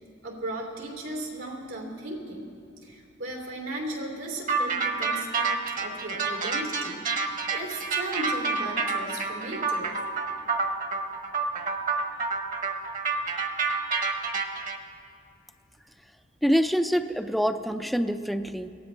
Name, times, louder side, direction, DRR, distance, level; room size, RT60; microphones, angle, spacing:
voice 1, 0.2-2.5 2.8-9.9, right 1 dB, 85° right, 0 dB, 3.1 m, -36 dB
sound 1, 4.5-14.8, right 4 dB, 45° right, 1.2 m, -28 dB
voice 2, 16.4-18.7, equal, ahead, 8 dB, 0.4 m, -25 dB
23.0 x 16.0 x 3.4 m, 2.5 s
head